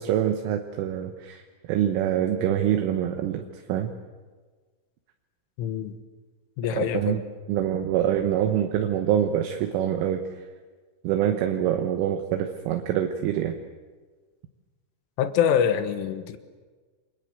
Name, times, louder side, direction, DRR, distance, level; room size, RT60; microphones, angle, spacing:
voice 1, 0.0-1.4 1.7-3.9 6.7-7.2 7.5-10.2 11.0-13.6, right 10 dB, 75° right, 5 dB, 3.6 m, -25 dB
voice 2, 5.6-5.9 6.6-7.2 15.2-16.4, left 8 dB, 75° left, 10 dB, 3.7 m, -25 dB
29.0 x 23.0 x 8.1 m, 1.4 s
omnidirectional pair, 6.0 m